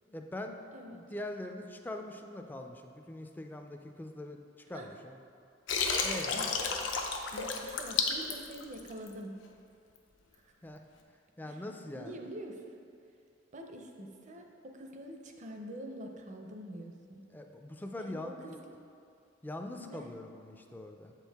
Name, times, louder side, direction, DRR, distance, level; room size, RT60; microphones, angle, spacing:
voice 1, 0.1-0.6 0.9-5.2 6.0-6.4 10.6-10.8 11.4-12.2 17.3-18.6 19.4-21.1, left 1 dB, 10° left, 4 dB, 0.3 m, -42 dB
voice 2, 0.7-1.0 4.7-4.9 6.3-6.5 7.3-9.4 10.3-10.5 11.4-11.6 11.9-12.8 13.5-17.2 18.0-18.8 19.8-20.1, right 1 dB, 40° right, 3 dB, 0.6 m, -45 dB
Water, 5.7-9.1, left 5 dB, 85° left, 0.6 m, -32 dB
7.6 x 4.6 x 3.4 m, 2.5 s
head